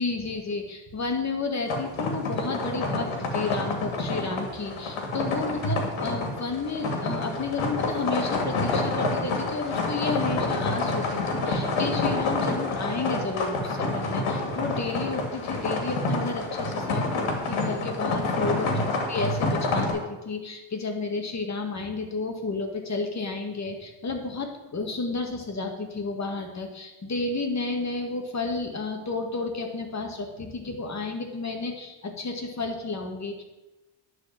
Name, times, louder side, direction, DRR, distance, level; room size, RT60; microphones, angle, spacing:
voice 1, 0.0-33.4, left 3 dB, 35° left, 3 dB, 1.9 m, -31 dB
sound 1, 1.7-19.9, left 2 dB, 70° left, 2.4 m, -28 dB
10.0 x 4.7 x 7.7 m, 1.1 s
cardioid pair, 105°, 50 cm